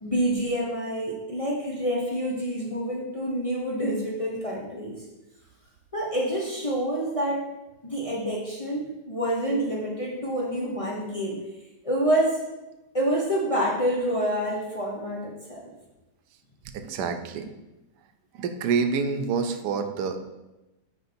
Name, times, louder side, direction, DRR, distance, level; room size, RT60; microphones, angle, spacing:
voice 1, 0.0-5.0 5.9-7.4 7.8-11.4 11.8-12.4 12.9-15.7, right 1 dB, 25° left, -4 dB, 0.8 m, -27 dB
voice 2, 16.7-17.5 18.3-20.3, right 5 dB, 85° right, 7 dB, 1.2 m, -27 dB
6.6 x 4.8 x 4.3 m, 1.0 s
omnidirectional pair, 1.8 m